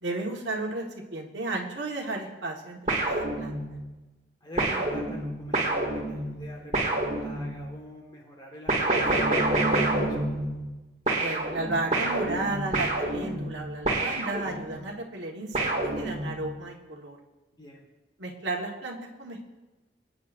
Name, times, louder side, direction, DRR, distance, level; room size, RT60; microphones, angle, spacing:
voice 1, 0.0-0.8 1.1-3.6 11.2-17.2 18.2-19.5, right 2 dB, 80° right, -1 dB, 1.5 m, -33 dB
sound 1, 2.9-3.9 4.6-7.7 8.7-10.8 11.1-14.8 15.5-16.5, right 2 dB, 40° right, 2.2 m, -28 dB
voice 2, 4.4-10.4 17.6-17.9, equal, 25° left, -1 dB, 1.6 m, -45 dB
24.0 x 9.5 x 2.6 m, 1.1 s
head